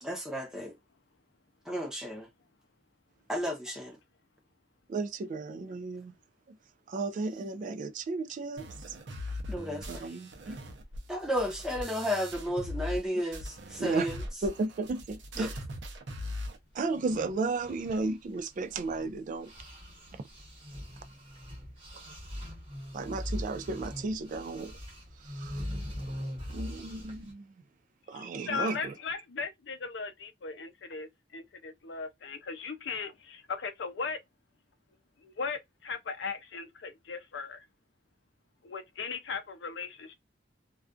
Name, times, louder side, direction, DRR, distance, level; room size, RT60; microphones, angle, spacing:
voice 1, 0.0-0.7 1.7-2.3 3.3-4.0 9.5-10.2 10.5-10.6 11.1-14.2 15.4-15.5, equal, 5° right, 0.7 m, -33 dB
voice 2, 4.9-6.1 6.5-6.6 6.9-9.0 9.9-10.6 13.8-14.1 14.4-15.6 16.7-19.5 22.1-22.2 22.9-24.8 25.2-25.6 26.5-27.4 28.1-28.9, right 3 dB, 45° right, 0.3 m, -34 dB
sound 1, 8.6-13.0 13.3-16.6, left 1 dB, 90° right, 0.6 m, -40 dB
sound 2, 16.7-19.1 19.4-27.3, equal, 30° right, 1.0 m, -41 dB
voice 3, 28.1-34.2 35.2-37.6 38.6-40.1, left 5 dB, 70° left, 0.5 m, -38 dB
2.3 x 2.3 x 2.4 m
head